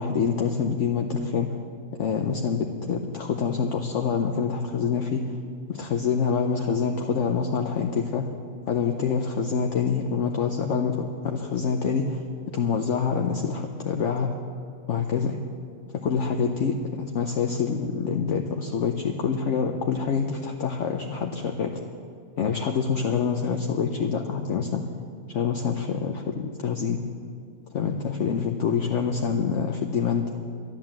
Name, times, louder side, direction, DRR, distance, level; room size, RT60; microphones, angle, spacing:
voice 1, 0.0-1.6 2.0-5.4 5.7-8.3 8.7-12.2 12.5-14.4 14.9-15.4 15.9-21.8 22.4-24.8 25.3-27.0 27.7-30.3, left 6 dB, 60° left, 3 dB, 1.0 m, -26 dB
12.0 x 11.0 x 7.4 m, 2.4 s
omnidirectional pair, 1.6 m